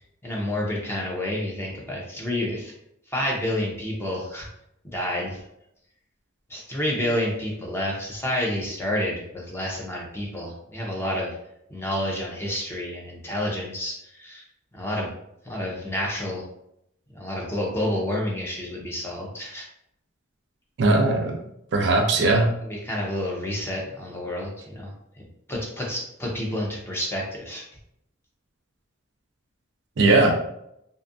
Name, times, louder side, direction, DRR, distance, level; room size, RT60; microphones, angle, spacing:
voice 1, 0.2-2.7 3.1-4.5 4.9-5.4 6.5-11.3 11.7-14.4 14.7-15.1 15.5-16.5 17.1-19.7 22.6-27.6, left 1 dB, 10° left, -3 dB, 0.5 m, -29 dB
voice 2, 20.8-21.4 21.7-22.5 30.0-30.3, right 2 dB, 60° right, 3 dB, 0.4 m, -19 dB
2.6 x 2.3 x 2.5 m, 0.78 s
head